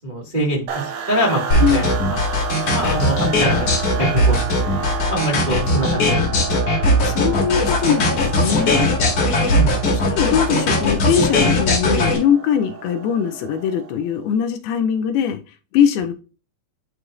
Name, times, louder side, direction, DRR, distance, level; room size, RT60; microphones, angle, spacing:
voice 1, 0.0-1.4 1.7-1.8 2.1-2.2 2.7-3.7 4.1-4.4 4.7-6.4 9.5-9.7, equal, 30° right, 0.8 m, -24 dB
sound 1, 0.7-14.1, right 7 dB, 70° right, 2.6 m, -31 dB
sound 2, 1.5-12.2, left 2 dB, 45° left, 2.3 m, -18 dB
voice 2, 6.5-8.8 9.9-15.4 15.7-16.1, left 8 dB, 85° left, 2.5 m, -21 dB
9.7 x 4.6 x 2.5 m
omnidirectional pair, 4.5 m